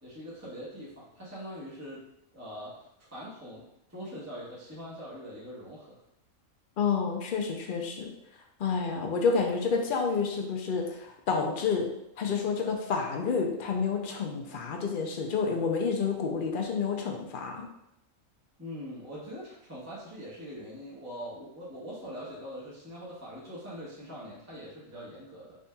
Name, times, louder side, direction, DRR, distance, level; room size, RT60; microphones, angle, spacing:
voice 1, 0.0-2.0 2.3-2.7 3.1-3.6 3.9-6.0 8.9-9.2 18.6-25.6, equal, 15° right, -8 dB, 1.0 m, -42 dB
voice 2, 6.8-8.1 8.6-11.9 12.2-17.7, left 5 dB, 55° left, 2 dB, 0.6 m, -29 dB
4.1 x 3.6 x 2.2 m, 0.81 s
omnidirectional pair, 1.4 m